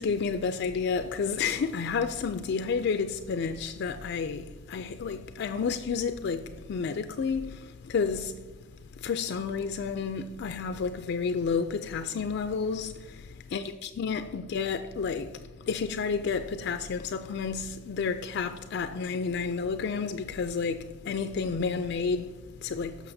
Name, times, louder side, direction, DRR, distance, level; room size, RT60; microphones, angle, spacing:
voice 1, 0.0-8.4 9.0-13.2 13.5-13.6 14.0-15.3 15.7-23.0, left 5 dB, 55° left, 0.3 m, -30 dB
15.0 x 6.2 x 2.7 m
head